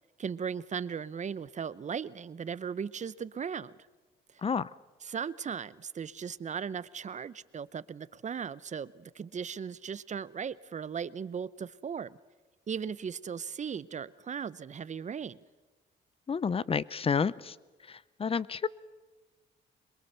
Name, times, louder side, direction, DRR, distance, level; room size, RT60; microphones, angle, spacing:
voice 1, 0.2-3.7 5.0-12.2 12.7-15.4, right 7 dB, 35° right, 18 dB, 0.7 m, -37 dB
voice 2, 16.3-17.5 17.9-18.7, left 6 dB, 30° left, 21 dB, 0.6 m, -30 dB
22.5 x 22.0 x 6.7 m, 1.3 s
cardioid pair, 90°, 20 cm